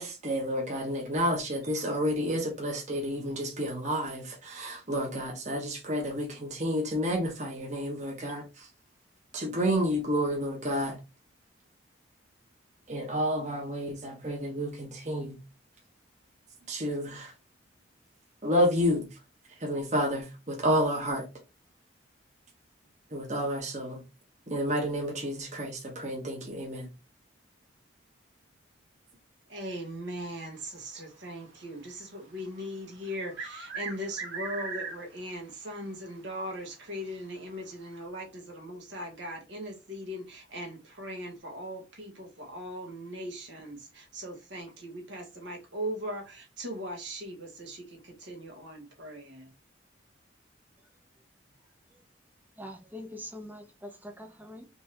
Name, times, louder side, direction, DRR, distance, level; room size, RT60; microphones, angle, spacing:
voice 1, 0.0-8.7 9.3-11.0 12.9-15.4 16.7-17.3 18.4-19.1 19.6-21.3 23.1-24.0 24.5-26.9, equal, 35° right, 1.4 m, -30 dB
voice 2, 29.5-49.5, equal, 70° right, 1.7 m, -39 dB
sound 1, 33.0-35.3 35.6-35.7 36.6-36.7 37.9-38.0, right 4 dB, 90° right, 1.5 m, -38 dB
voice 3, 52.6-54.7, left 1 dB, 10° right, 0.7 m, -43 dB
4.3 x 3.4 x 2.9 m
head